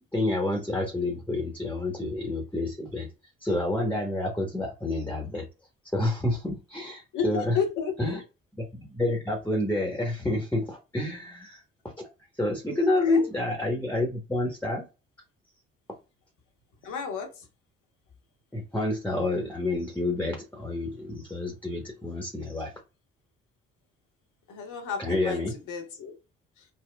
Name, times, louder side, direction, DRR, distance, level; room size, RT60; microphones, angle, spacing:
voice 1, 0.1-3.1 3.4-5.4 5.9-7.6 8.0-8.2 8.7-11.6 12.4-14.9 18.5-22.7 25.0-25.5, left 2 dB, 5° left, 1.0 m, -28 dB
voice 2, 7.1-8.2 12.6-13.2 16.8-17.5 24.5-26.2 26.6-26.7, left 6 dB, 70° left, 1.1 m, -33 dB
4.2 x 2.1 x 2.2 m
hypercardioid pair, 55°, 31 cm